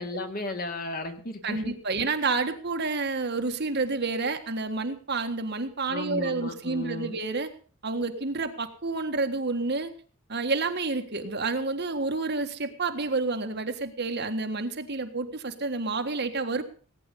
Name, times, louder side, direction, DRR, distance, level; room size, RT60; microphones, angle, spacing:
voice 1, 0.0-2.1 5.9-7.2, left 2 dB, 45° left, 5 dB, 2.2 m, -35 dB
voice 2, 1.4-7.5 7.8-9.9 10.3-16.6, right 3 dB, 50° right, 6 dB, 1.6 m, -29 dB
18.0 x 9.7 x 5.4 m, 0.41 s
head